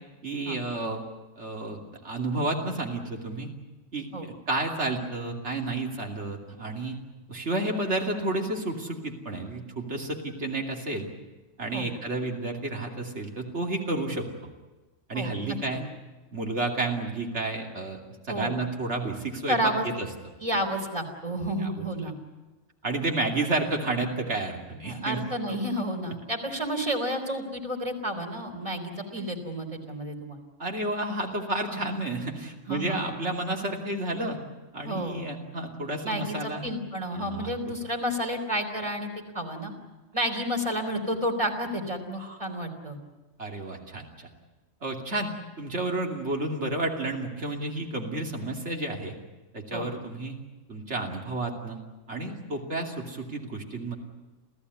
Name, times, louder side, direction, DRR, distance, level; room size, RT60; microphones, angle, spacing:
voice 1, 0.2-1.0 1.4-1.8 2.0-3.5 3.9-7.0 7.3-11.1 11.6-14.3 15.1-15.8 16.3-18.0 18.3-19.6 19.8-20.1 21.6-21.8 22.8-25.6 30.6-34.4 34.7-36.6 37.1-37.5 42.2-42.4 43.4-44.3 44.8-45.3 45.6-49.1 49.5-50.4 50.7-51.8 52.1-53.9, right 2 dB, 65° right, 2 dB, 3.2 m, -31 dB
voice 2, 15.1-15.6 18.3-18.5 19.5-19.9 20.4-22.1 24.9-30.4 32.7-33.0 34.8-35.2 36.0-39.7 40.1-43.0 49.7-49.9, equal, 25° right, 3 dB, 3.6 m, -31 dB
28.0 x 16.0 x 9.7 m, 1.2 s
omnidirectional pair, 1.3 m